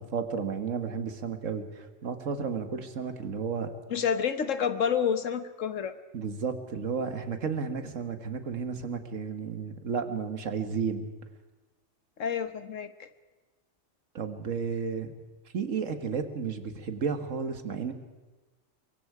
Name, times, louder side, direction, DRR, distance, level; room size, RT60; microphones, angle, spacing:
voice 1, 0.0-3.7 6.1-11.1 14.1-15.1 15.5-17.9, right 6 dB, 85° right, 8 dB, 1.8 m, -32 dB
voice 2, 3.9-5.9 12.2-13.1, left 7 dB, 85° left, 11 dB, 1.5 m, -29 dB
23.5 x 23.0 x 4.8 m, 1.2 s
omnidirectional pair, 1.3 m